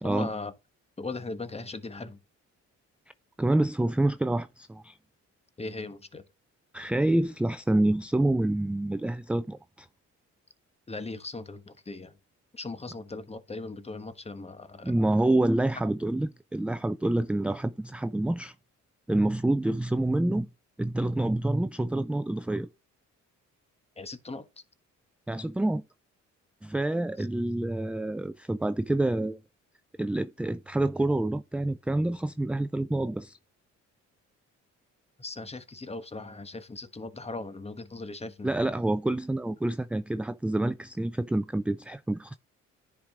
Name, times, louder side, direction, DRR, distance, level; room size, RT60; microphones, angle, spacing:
voice 1, 0.0-0.5 1.0-2.2 5.6-6.2 10.9-12.2 12.5-14.9 24.0-24.5 27.2-27.3 35.2-38.5, left 3 dB, 20° left, 1.3 m, -38 dB
voice 2, 3.4-5.0 6.7-9.9 14.8-18.5 19.1-20.5 20.8-22.7 25.3-25.8 26.6-29.4 30.0-33.4 38.4-42.4, right 1 dB, 5° right, 0.3 m, -27 dB
10.0 x 4.7 x 3.7 m
cardioid pair, 90°, 30 cm